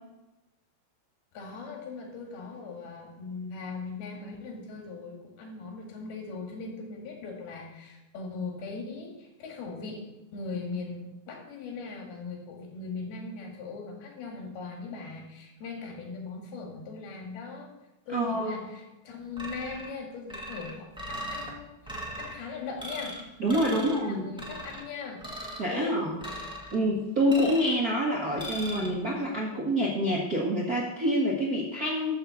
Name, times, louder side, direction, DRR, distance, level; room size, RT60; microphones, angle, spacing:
voice 1, 1.3-17.7 18.1-23.2 23.5-25.3 25.6-26.1, left 4 dB, 85° left, 0 dB, 4.0 m, -39 dB
voice 2, 18.1-18.6 23.4-24.3 25.6-26.2 26.7-32.1, equal, 50° right, -4 dB, 1.1 m, -27 dB
sound 1, 19.4-19.9 20.3-21.5 21.9-22.3 22.8-23.2 23.5-24.0 24.4-24.8 25.2-25.7 26.2-26.8 27.3-27.8 28.4-28.9, equal, 5° right, 0.3 m, -38 dB
12.5 x 5.3 x 7.0 m, 1.0 s
omnidirectional pair, 4.3 m